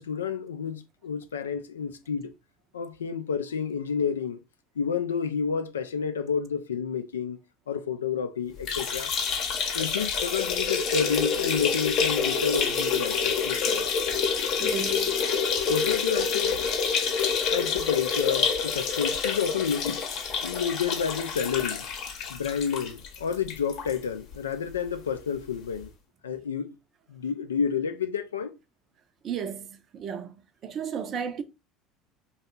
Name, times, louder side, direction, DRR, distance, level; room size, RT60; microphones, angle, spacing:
voice 1, 0.0-2.3 2.7-4.4 4.8-7.4 7.7-9.1 9.7-13.8 15.6-16.6 17.5-20.1 20.4-21.9 22.3-25.9 26.2-26.7 27.1-28.5, left 7 dB, 85° left, 0.3 m, -30 dB
sound 1, 8.6-24.0 24.3-24.4 24.7-24.8 25.8-25.9, left 5 dB, 55° left, 0.8 m, -27 dB
voice 2, 14.6-15.2 29.2-31.4, right 7 dB, 45° right, 0.5 m, -34 dB
2.9 x 2.2 x 3.6 m
hypercardioid pair, 70°, 0 cm